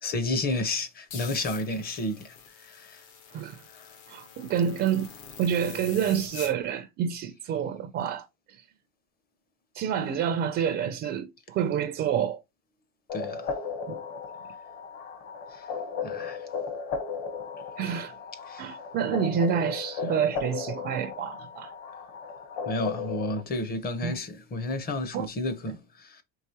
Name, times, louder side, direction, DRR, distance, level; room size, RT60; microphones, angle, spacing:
voice 1, 0.0-3.0 3.7-3.9 13.1-13.6 15.5-15.7 16.0-16.5 18.5-18.7 22.6-26.2, left 2 dB, 25° left, 0.6 m, -32 dB
sound 1, 1.1-6.5, left 6 dB, 75° left, 1.3 m, -45 dB
voice 2, 4.1-5.1 5.4-8.6 9.7-12.4 13.9-14.0 17.8-18.1 18.6-21.7 24.0-24.1 25.1-25.3, right 8 dB, 35° right, 0.4 m, -28 dB
sound 2, 13.1-23.4, left 5 dB, 50° left, 1.1 m, -36 dB
4.6 x 3.3 x 2.8 m
cardioid pair, 165°, 38 cm